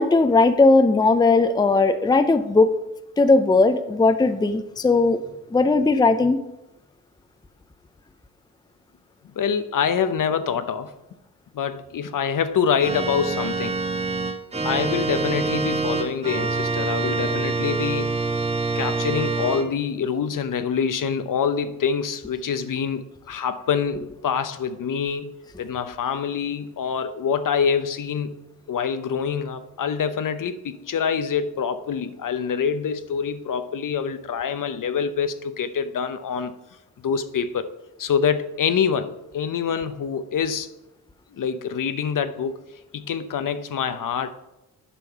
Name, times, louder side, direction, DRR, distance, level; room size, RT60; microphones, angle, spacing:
voice 1, 0.0-2.7 3.2-5.2 5.5-6.4, left 3 dB, 10° left, 0.6 m, -18 dB
voice 2, 9.3-10.9 11.5-13.8 14.6-18.2 18.7-28.4 28.7-36.6 37.0-37.7 38.0-40.7 41.4-42.6 42.9-44.3, left 7 dB, 50° left, 0.8 m, -25 dB
Organ, 12.8-19.6, right 3 dB, 15° right, 1.0 m, -25 dB
8.5 x 5.3 x 4.6 m
supercardioid pair, 60°, 40 cm